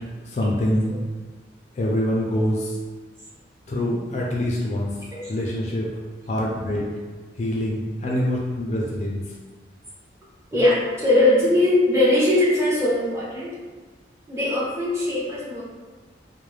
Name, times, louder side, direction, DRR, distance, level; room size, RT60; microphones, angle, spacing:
voice 1, 0.3-1.0 1.8-2.7 3.7-4.9 5.3-5.9 6.3-6.9 7.4-9.2, left 1 dB, 40° left, -3 dB, 0.4 m, -25 dB
voice 2, 10.5-13.5 14.3-15.6, left 1 dB, 15° right, -7 dB, 0.6 m, -20 dB
2.3 x 2.0 x 3.1 m, 1.4 s
head